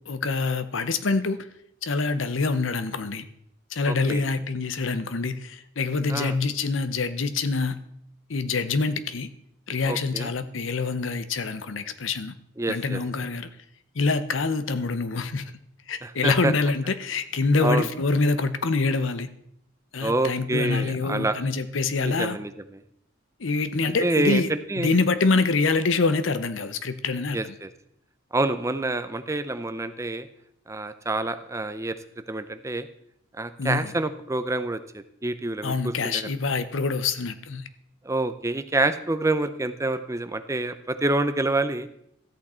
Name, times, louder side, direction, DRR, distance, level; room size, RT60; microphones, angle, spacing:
voice 1, 0.1-1.5 1.8-3.2 3.7-7.8 8.3-9.3 9.7-12.3 12.7-13.5 13.9-15.4 15.9-19.3 19.9-22.4 23.4-24.5 24.8-27.6 33.6-33.9 35.6-37.7, left 3 dB, 70° left, 12 dB, 0.8 m, -25 dB
voice 2, 3.9-4.2 6.1-6.4 9.8-10.3 12.6-13.0 16.0-16.5 17.6-17.9 20.0-21.4 22.0-22.8 23.8-24.9 27.3-27.7 28.3-30.3 30.7-32.0 32.3-32.9 33.3-36.3 38.0-41.9, right 2 dB, 15° right, 11 dB, 0.5 m, -27 dB
13.5 x 8.5 x 4.3 m, 0.74 s
head